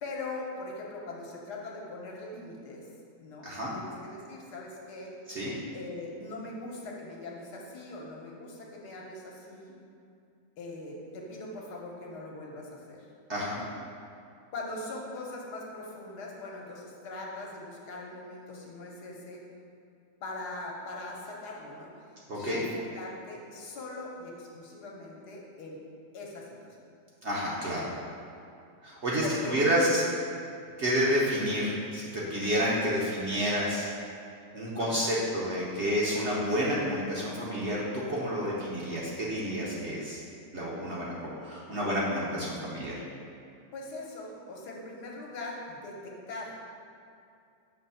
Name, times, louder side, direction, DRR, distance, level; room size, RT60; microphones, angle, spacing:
voice 1, 0.0-2.9 3.2-5.1 5.7-9.8 10.6-13.1 13.5-13.7 14.5-19.4 20.2-22.0 22.3-25.8 26.1-26.8 29.2-29.8 34.8-35.1 43.7-46.6, left 2 dB, 70° left, -2 dB, 1.4 m, -41 dB
voice 2, 22.3-22.6 27.2-27.9 28.8-30.0 30.8-33.9 34.5-40.2 40.5-43.0, equal, 50° right, -6 dB, 0.9 m, -29 dB
6.8 x 3.0 x 5.5 m, 2.5 s
omnidirectional pair, 1.9 m